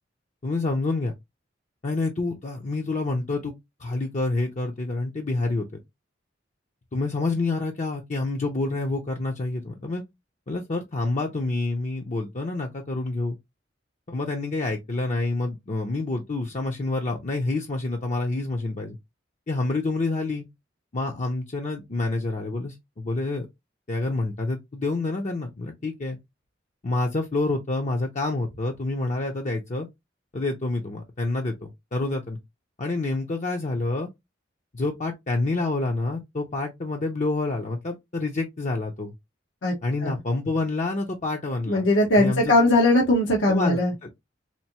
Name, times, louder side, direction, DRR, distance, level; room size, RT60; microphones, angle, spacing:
voice 1, 0.4-1.1 1.8-3.5 3.8-5.7 6.9-10.0 10.5-13.4 14.1-19.0 19.5-20.4 20.9-23.5 23.9-26.2 26.8-29.9 30.3-32.4 32.8-34.1 34.7-39.1 39.8-41.8 42.1-42.6 43.5-44.2, left 2 dB, 40° left, 0.6 m, -28 dB
voice 2, 41.7-43.9, left 1 dB, 85° left, 1.1 m, -20 dB
4.4 x 2.6 x 2.9 m
head